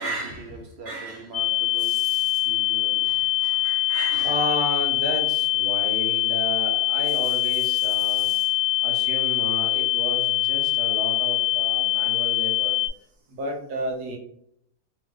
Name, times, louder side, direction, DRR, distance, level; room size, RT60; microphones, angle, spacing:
voice 1, 0.0-2.0 2.5-4.4, right 2 dB, 60° right, 0.7 m, -36 dB
sound 1, 1.3-12.9, left 17 dB, 60° left, 1.2 m, -23 dB
voice 2, 1.8-2.4 4.2-8.5 8.8-12.7 13.3-14.2, right 1 dB, 75° right, 1.4 m, -32 dB
3.5 x 3.4 x 3.1 m
omnidirectional pair, 1.6 m